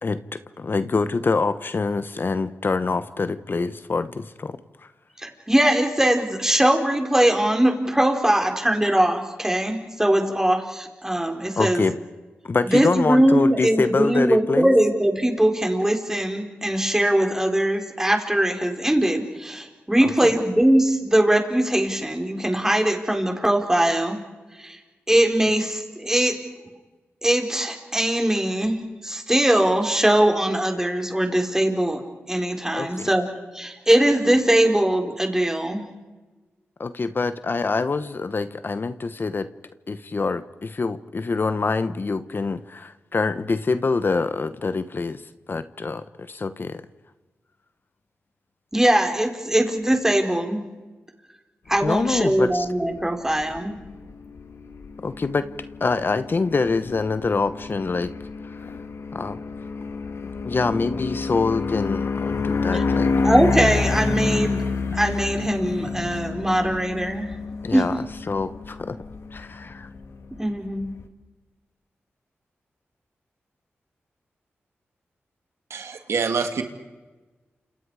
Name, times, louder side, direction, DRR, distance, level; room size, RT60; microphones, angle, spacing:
voice 1, 0.0-4.6 11.6-11.9 12.4-14.7 20.0-20.3 32.7-33.1 36.8-39.5 39.9-45.2 45.5-46.8 51.8-52.7 55.0-55.5 55.8-58.1 58.5-58.6 59.1-59.4 60.4-63.1 67.6-68.0 68.3-69.0 69.3-69.9, left 4 dB, 50° left, 12 dB, 1.1 m, -25 dB
voice 2, 5.2-11.8 12.6-24.2 24.6-24.8 25.1-26.3 27.2-28.8 29.0-32.0 32.3-33.3 33.5-35.8 48.7-50.6 51.7-53.8 62.7-62.8 63.2-64.6 64.9-67.3 67.7-67.8 70.4-70.9, right 1 dB, 10° right, 3 dB, 4.7 m, -21 dB
sound 1, 51.7-71.0, left 4 dB, 70° left, 1.9 m, -29 dB
voice 3, 75.7-76.6, right 5 dB, 80° right, 6 dB, 2.3 m, -26 dB
29.5 x 27.5 x 5.0 m, 1.2 s
cardioid pair, 60°, 5 cm